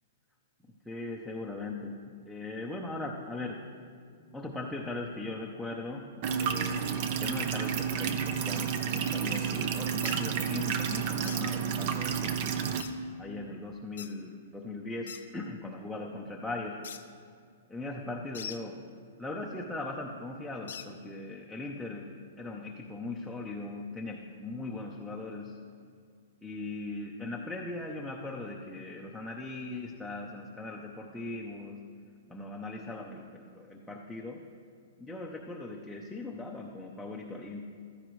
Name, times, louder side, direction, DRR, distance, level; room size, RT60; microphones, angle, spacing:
voice 1, 0.9-1.9 2.3-3.6 4.3-6.0 6.3-12.4 13.2-16.8 17.7-18.8 19.2-22.1 22.4-25.6 26.4-31.8 32.3-34.4 35.0-37.6, left 2 dB, ahead, -3 dB, 0.7 m, -39 dB
sound 1, 6.2-12.8, right 7 dB, 40° right, 0.7 m, -31 dB
sound 2, 10.0-10.2 11.2-11.4 12.8-12.9 14.0-14.1 15.1-15.2 16.8-17.0 18.3-18.6 20.7-20.9, left 8 dB, 80° left, 0.8 m, -42 dB
15.0 x 13.0 x 3.2 m, 2.2 s
hypercardioid pair, 160°, 0 cm